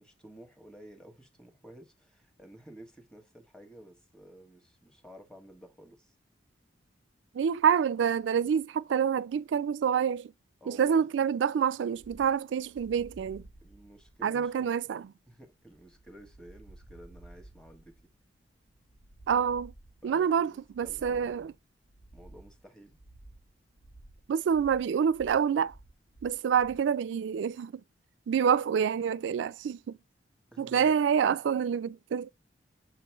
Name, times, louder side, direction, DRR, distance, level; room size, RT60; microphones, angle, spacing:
voice 1, 0.0-6.2 10.6-11.1 13.6-14.5 15.3-18.1 20.0-21.3 22.1-23.0 30.5-30.9, right 1 dB, 5° left, 1.4 m, -52 dB
voice 2, 7.3-10.3 10.7-13.4 14.2-15.0 19.3-19.7 20.0-21.5 24.3-25.7 26.2-27.7 28.3-30.0 30.6-32.3, right 7 dB, 75° right, 0.3 m, -27 dB
sound 1, 12.0-26.9, right 1 dB, 60° left, 1.1 m, -54 dB
7.4 x 3.0 x 4.5 m
head